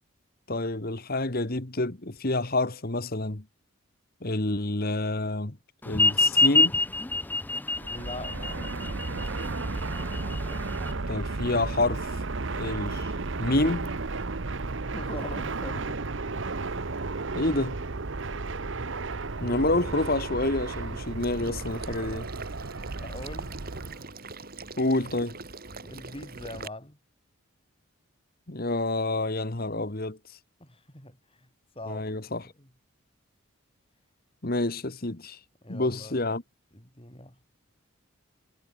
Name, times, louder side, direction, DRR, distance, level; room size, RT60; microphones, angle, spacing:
voice 1, 0.5-3.4 4.2-5.6 5.8-6.7 11.1-12.1 12.6-13.1 13.4-13.9 17.3-17.8 19.4-22.3 24.8-25.4 28.5-30.2 31.9-32.4 34.4-35.4 35.7-36.4, left 2 dB, 45° left, 1.7 m, -28 dB
sound 1, 5.9-10.9, left 2 dB, 10° left, 0.3 m, -25 dB
Fixed-wing aircraft airplane, 7.7-24.1, right 3 dB, 60° right, 1.0 m, -33 dB
voice 2, 7.9-8.7 14.9-16.2 23.0-23.5 25.8-27.0 30.6-31.5 31.8-32.0 32.6-32.7 35.6-36.2 36.7-37.4, left 1 dB, 25° left, 7.5 m, -42 dB
Water / Liquid, 21.2-26.7, right 3 dB, 45° right, 4.1 m, -43 dB
head